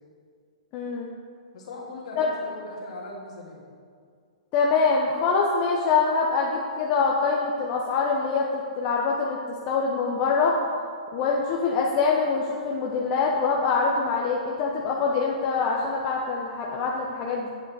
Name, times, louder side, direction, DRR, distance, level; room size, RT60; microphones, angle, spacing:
voice 1, 0.7-1.1 2.2-2.3 4.5-10.6 11.1-17.5, left 4 dB, 35° left, -1 dB, 0.8 m, -24 dB
voice 2, 1.5-3.6, left 2 dB, 65° left, -3 dB, 2.1 m, -39 dB
8.2 x 7.2 x 3.4 m, 2.2 s
hypercardioid pair, 125°, 4 cm